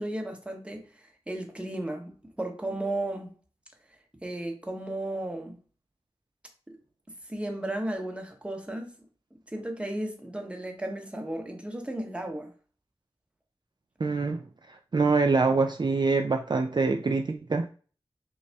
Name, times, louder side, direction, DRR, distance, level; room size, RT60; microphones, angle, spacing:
voice 1, 0.0-3.3 4.2-5.6 6.7-6.8 7.3-9.0 9.5-12.5, right 1 dB, 10° right, 0.9 m, -34 dB
voice 2, 14.0-14.4 14.7-17.7, right 4 dB, 45° right, 0.3 m, -25 dB
5.3 x 2.0 x 3.4 m
wide cardioid pair, 50°, 10 cm